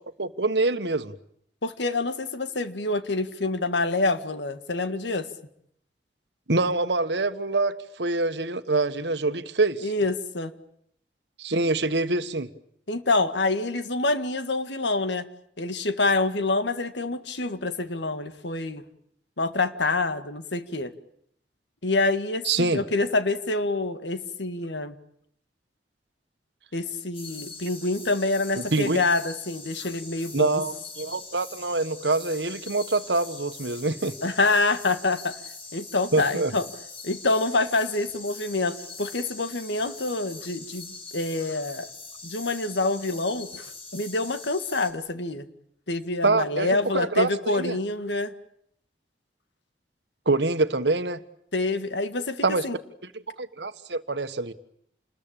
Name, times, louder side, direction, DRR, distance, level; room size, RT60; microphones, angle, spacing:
voice 1, 0.2-1.1 6.5-9.9 11.4-12.5 22.4-22.8 28.6-29.0 30.3-34.2 36.1-36.5 46.2-47.8 50.2-51.2 52.4-52.6 53.3-54.5, right 3 dB, 75° right, 1.4 m, -25 dB
voice 2, 1.6-5.3 9.8-10.5 12.9-15.3 15.6-18.8 19.4-20.9 21.8-25.0 26.7-30.6 34.2-35.4 35.7-36.7 37.0-41.9 42.2-45.5 45.9-48.3 51.5-52.8, left 2 dB, 85° left, 1.9 m, -26 dB
sound 1, 27.1-44.9, left 4 dB, 30° left, 5.4 m, -42 dB
28.5 x 21.0 x 8.9 m
head